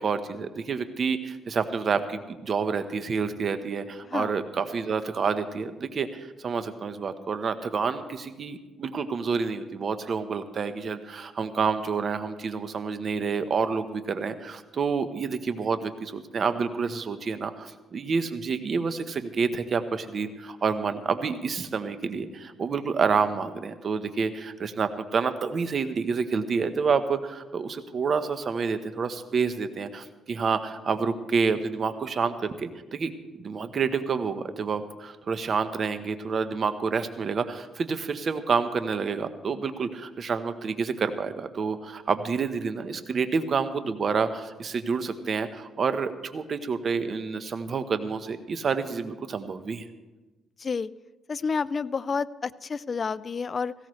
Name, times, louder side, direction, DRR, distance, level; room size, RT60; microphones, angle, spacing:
voice 1, 0.0-49.9, right 5 dB, 50° right, 10 dB, 1.1 m, -28 dB
voice 2, 50.6-50.9 51.3-53.7, left 5 dB, 40° left, 18 dB, 0.4 m, -29 dB
18.5 x 16.0 x 3.2 m, 1.2 s
cardioid pair, 90°, 0 cm